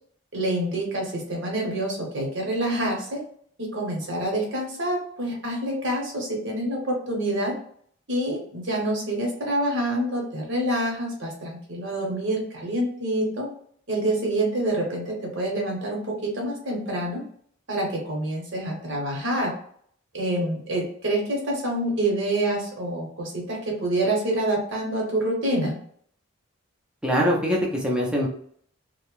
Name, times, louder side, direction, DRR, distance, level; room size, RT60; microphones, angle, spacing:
voice 1, 0.3-3.2 3.6-7.6 8.1-13.5 13.9-17.2 17.7-19.5 20.1-25.8, right 1 dB, 60° right, -1 dB, 1.0 m, -27 dB
voice 2, 27.0-28.3, equal, 5° right, -3 dB, 0.5 m, -23 dB
2.8 x 2.1 x 3.1 m, 0.62 s
head